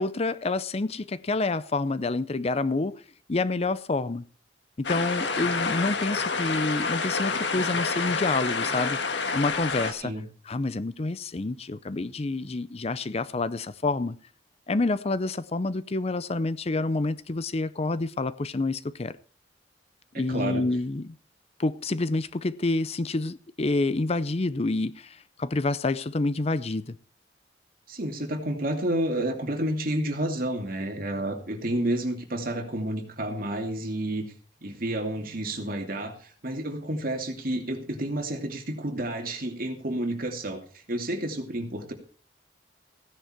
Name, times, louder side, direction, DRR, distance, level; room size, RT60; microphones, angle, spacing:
voice 1, 0.0-3.0 3.3-4.2 4.8-9.0 9.3-10.1 10.5-14.2 14.7-19.2 20.2-21.1 21.6-27.0, left 2 dB, 35° left, 0.6 m, -28 dB
sound 1, 4.8-9.9, left 4 dB, 75° left, 1.6 m, -28 dB
voice 2, 20.1-20.6 27.9-34.2 34.6-41.9, right 1 dB, 50° right, 2.6 m, -30 dB
16.0 x 10.0 x 4.4 m
head